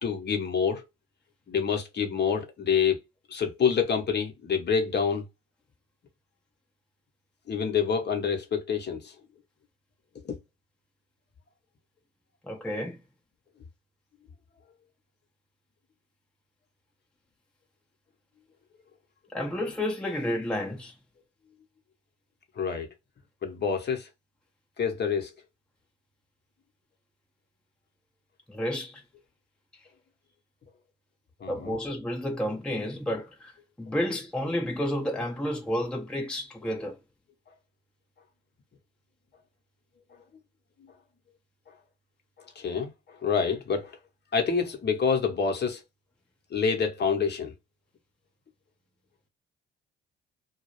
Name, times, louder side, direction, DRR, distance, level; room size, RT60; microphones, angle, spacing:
voice 1, 0.0-0.8 1.5-3.0 3.3-5.2 7.5-9.1 10.2-10.4 22.6-22.9 23.4-24.1 24.8-25.3 31.4-31.8 42.6-44.0 44.3-45.8 46.5-47.5, left 6 dB, 35° left, 0.9 m, -27 dB
voice 2, 12.4-13.0 19.3-20.9 28.5-29.0 31.5-37.0, left 1 dB, 5° left, 0.7 m, -31 dB
2.2 x 2.0 x 2.9 m
figure-of-eight pair, 45°, 32 cm